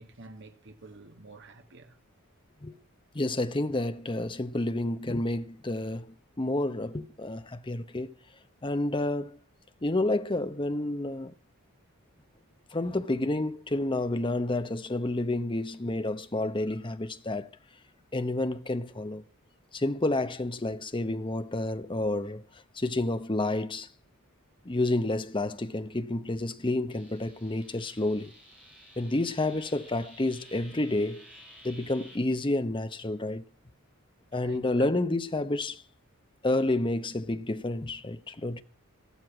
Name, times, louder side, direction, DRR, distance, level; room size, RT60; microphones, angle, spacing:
voice 1, 0.0-2.0 34.4-34.9, right 2 dB, 55° right, 1.8 m, -49 dB
voice 2, 3.1-8.1 8.6-9.4 9.8-11.3 12.7-17.5 18.1-19.2 19.7-23.9 24.6-28.3 29.0-31.3 31.6-33.4 34.3-35.8 36.4-38.6, left 2 dB, 20° left, 0.7 m, -30 dB
sound 1, 26.9-32.2, equal, 5° right, 5.2 m, -53 dB
14.0 x 12.5 x 5.9 m
head